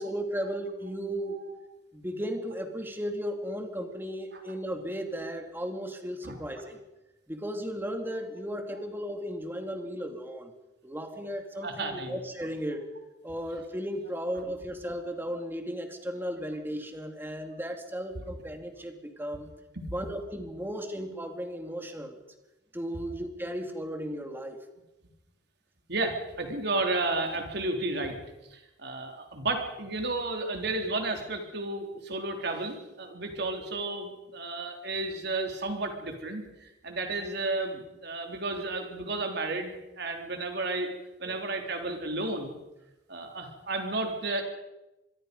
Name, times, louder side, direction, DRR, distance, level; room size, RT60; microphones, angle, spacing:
voice 1, 0.0-1.4 1.9-6.8 7.3-10.5 10.8-12.9 13.2-19.5 19.9-22.2 22.7-24.6 41.2-41.4, equal, 10° right, 5 dB, 2.5 m, -35 dB
voice 2, 11.6-12.2 19.8-19.9 25.9-28.1 28.5-40.9 41.2-42.5 43.1-44.4, right 2 dB, 65° right, 3 dB, 3.7 m, -32 dB
25.5 x 22.0 x 5.4 m, 0.99 s
head